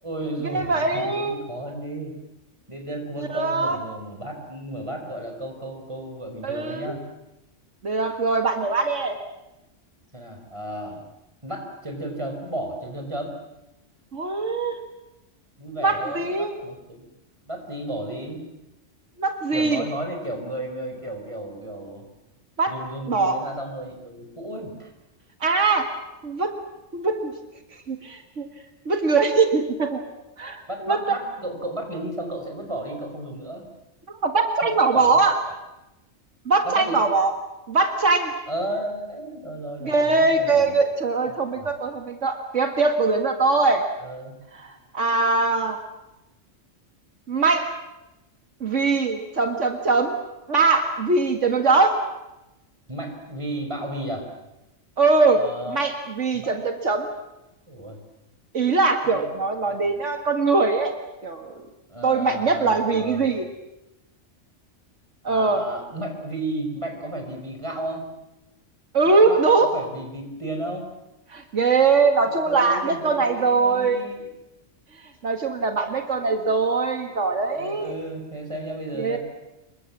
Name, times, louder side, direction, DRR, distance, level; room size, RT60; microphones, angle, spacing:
voice 1, 0.0-2.1 2.7-7.0 10.1-11.0 11.4-13.4 15.6-17.1 17.4-18.5 19.5-22.1 22.7-24.9 30.7-33.7 34.6-35.2 36.6-37.0 38.5-40.8 41.3-41.7 44.0-44.3 52.9-54.3 55.3-55.8 56.3-56.6 57.7-58.0 59.0-59.3 59.6-59.9 61.9-63.3 65.3-68.1 69.1-70.9 72.3-74.2 77.5-79.2, right 1 dB, 25° right, 3 dB, 5.3 m, -33 dB
voice 2, 0.5-1.4 3.2-3.8 6.4-6.9 7.8-9.1 14.1-14.8 15.8-16.5 19.2-19.8 22.6-22.7 23.1-23.4 25.4-25.9 26.2-26.5 26.9-27.3 27.9-28.5 28.9-30.0 30.4-31.0 34.2-35.3 36.5-37.3 37.7-38.3 39.8-43.8 44.6-45.8 47.3-47.7 48.6-50.2 50.5-52.0 55.0-55.4 55.7-57.1 58.5-60.9 61.2-61.5 62.0-63.4 65.2-65.6 68.9-69.7 71.3-74.1 75.2-77.9 79.0-79.2, right 4 dB, 75° right, 6 dB, 2.2 m, -21 dB
27.0 x 23.0 x 7.4 m, 0.94 s
omnidirectional pair, 1.3 m